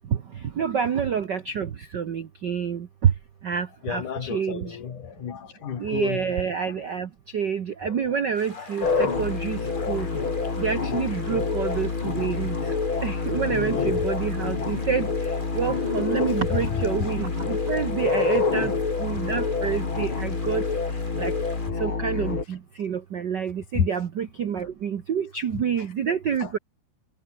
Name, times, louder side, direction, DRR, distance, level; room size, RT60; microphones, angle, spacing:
voice 1, 0.6-3.1 3.4-4.8 5.8-9.6 9.9-10.1 10.6-12.5 13.0-15.1 15.6-18.7 19.0-20.6 21.2-21.3 21.8-26.6, right 7 dB, 65° right, 1.1 m, -28 dB
voice 2, 3.8-6.2 7.9-8.1 8.5-8.9 9.8-10.1 10.3-10.5 13.7-14.1 23.8-23.9 26.4-26.6, left 8 dB, 75° left, 4.0 m, -32 dB
sound 1, 8.3-21.7, left 1 dB, 15° left, 6.5 m, -46 dB
sound 2, 8.8-22.4, left 4 dB, 40° left, 4.4 m, -27 dB
omnidirectional pair, 3.6 m